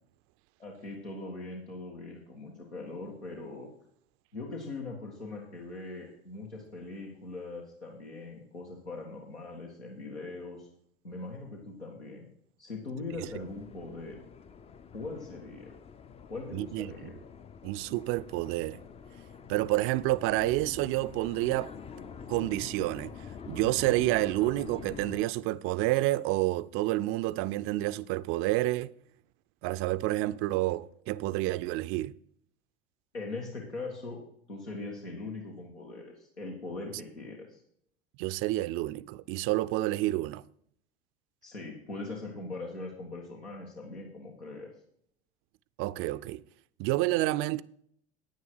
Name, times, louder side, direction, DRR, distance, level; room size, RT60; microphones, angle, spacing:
voice 1, 0.6-3.7 4.3-10.7 11.0-12.3 12.6-14.2 14.9-15.7 16.3-17.1 33.1-34.2 34.5-37.6 41.4-44.7, left 3 dB, 85° left, 1.9 m, -41 dB
sound 1, 13.1-25.2, left 6 dB, 20° left, 0.5 m, -46 dB
voice 2, 16.5-16.9 17.6-18.8 19.5-21.7 22.3-23.2 23.5-28.9 29.6-32.1 38.2-40.4 45.8-46.4 46.8-47.6, right 17 dB, 40° right, 0.5 m, -29 dB
10.5 x 9.4 x 4.7 m
figure-of-eight pair, 75°, 32 cm